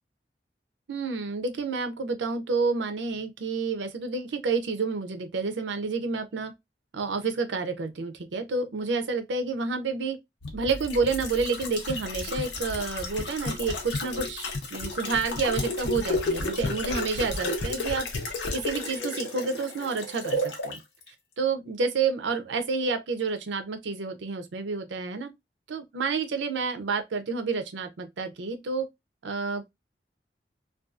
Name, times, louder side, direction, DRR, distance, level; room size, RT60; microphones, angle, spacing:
voice 1, 0.9-6.5 6.9-10.2 10.5-18.1 18.5-20.8 21.4-25.3 25.7-28.9 29.2-29.7, right 4 dB, 85° right, 0.5 m, -29 dB
sound 1, 10.4-20.8 21.1-21.2, left 2 dB, 75° left, 0.7 m, -32 dB
2.6 x 2.3 x 2.3 m
head